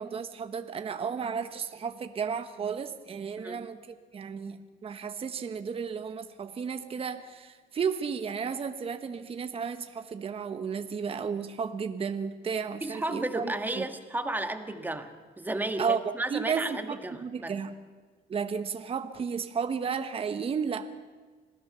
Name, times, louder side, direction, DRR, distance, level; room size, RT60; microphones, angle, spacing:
voice 1, 0.0-4.6 4.8-13.8 15.8-17.7 18.3-20.9, right 6 dB, 35° right, 8 dB, 1.2 m, -33 dB
voice 2, 12.8-15.1 15.4-17.6, right 2 dB, 10° right, 7 dB, 1.9 m, -33 dB
26.5 x 17.5 x 6.9 m, 1.4 s
cardioid pair, 110°, 17 cm